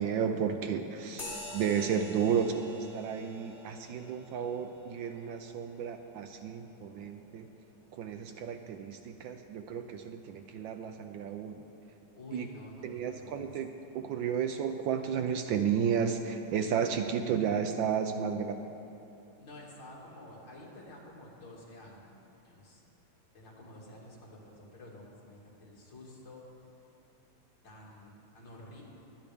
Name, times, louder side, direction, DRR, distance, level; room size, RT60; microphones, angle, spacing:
voice 1, 0.0-7.5 7.9-11.6 12.3-12.5 12.8-18.6, right 7 dB, 75° right, 7 dB, 1.2 m, -32 dB
sound 1, 1.2-9.1, left 2 dB, 40° left, 2.2 m, -49 dB
voice 2, 12.1-13.5 19.4-22.0 22.4-22.8 23.3-26.9 27.6-28.8, left 1 dB, 60° left, -4 dB, 3.1 m, -50 dB
23.5 x 9.8 x 3.5 m, 2.8 s
omnidirectional pair, 2.3 m